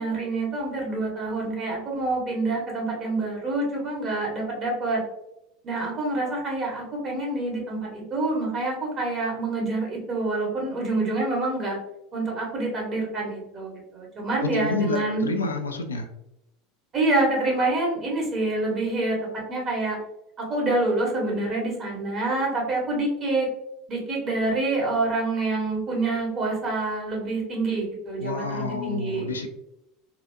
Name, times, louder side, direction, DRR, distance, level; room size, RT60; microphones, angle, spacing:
voice 1, 0.0-5.0 5.6-11.8 12.1-15.3 16.9-19.2 19.5-20.0 20.5-23.5 23.9-29.3, right 2 dB, 35° right, -2 dB, 1.4 m, -27 dB
voice 2, 14.4-16.1 28.2-29.5, left 3 dB, 80° left, 5 dB, 0.4 m, -29 dB
3.8 x 2.4 x 2.3 m, 0.84 s
figure-of-eight pair, 75°, 0 cm